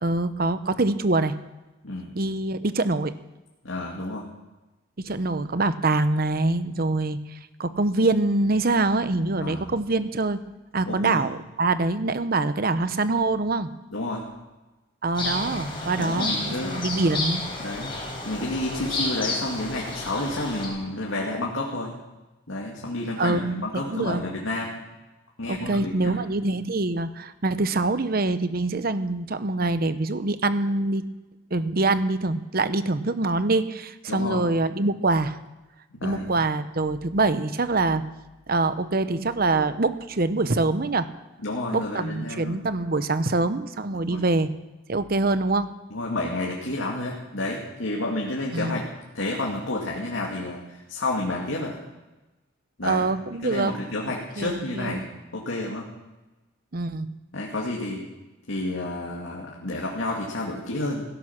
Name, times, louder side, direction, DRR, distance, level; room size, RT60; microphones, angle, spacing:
voice 1, 0.0-1.3 2.1-3.1 5.0-10.4 10.7-13.7 15.0-17.5 23.2-24.2 25.5-31.0 31.5-35.4 36.0-38.0 38.5-41.1 41.7-44.5 44.9-45.7 48.5-48.8 52.8-53.7 54.4-55.0 56.7-57.1, right 2 dB, 50° right, 12 dB, 0.9 m, -24 dB
voice 2, 3.6-4.3 9.4-9.7 10.9-11.4 13.9-14.2 16.0-16.8 17.6-18.0 18.2-22.0 22.5-24.8 25.4-26.2 34.1-34.4 35.9-36.3 41.4-42.6 44.1-44.2 45.9-48.9 49.1-51.8 52.8-53.1 53.4-55.0 55.3-55.9 57.3-58.0 58.5-61.0, left 2 dB, 85° left, -3 dB, 2.3 m, -30 dB
sound 1, 15.1-20.7, left 2 dB, 25° left, 4.5 m, -31 dB
16.5 x 12.5 x 6.0 m, 1.1 s
head